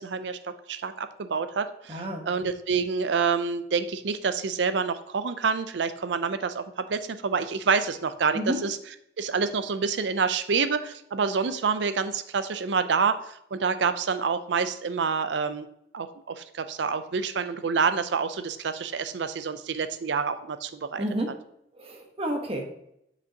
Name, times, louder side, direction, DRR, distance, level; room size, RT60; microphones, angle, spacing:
voice 1, 0.0-8.8 9.2-15.7 15.9-21.0, right 5 dB, 85° right, 11 dB, 0.5 m, -27 dB
voice 2, 1.9-2.3 8.3-8.6 21.0-21.3 21.8-22.6, equal, 35° right, 3 dB, 1.1 m, -30 dB
7.7 x 6.1 x 2.8 m, 0.76 s
head